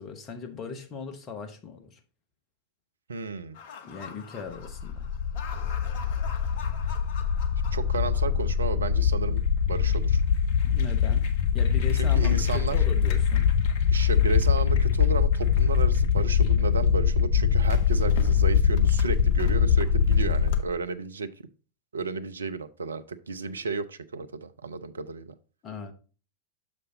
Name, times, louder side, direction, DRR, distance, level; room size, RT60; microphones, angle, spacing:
voice 1, 0.0-2.0 3.8-5.1 10.6-11.3 11.5-13.5 25.6-25.9, left 5 dB, 30° left, 1.1 m, -39 dB
voice 2, 3.1-3.6 7.7-9.4 9.7-10.2 11.9-12.8 13.9-21.5 21.9-25.3, right 4 dB, 70° right, 0.5 m, -33 dB
sound 1, 3.6-20.6, left 7 dB, 50° left, 0.9 m, -23 dB
6.6 x 5.2 x 3.8 m
figure-of-eight pair, 90°, 0 cm